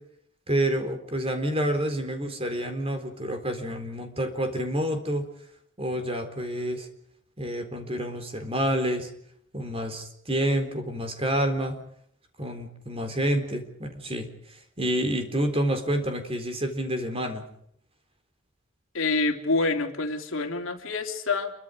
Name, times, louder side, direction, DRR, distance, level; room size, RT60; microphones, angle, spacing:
voice 1, 0.5-5.2 5.8-6.9 7.4-9.1 9.5-11.8 12.4-14.3 14.8-17.5, right 1 dB, 25° right, 7 dB, 4.0 m, -28 dB
voice 2, 18.9-21.5, left 3 dB, 60° left, 5 dB, 3.2 m, -27 dB
28.5 x 24.0 x 5.1 m, 0.69 s
head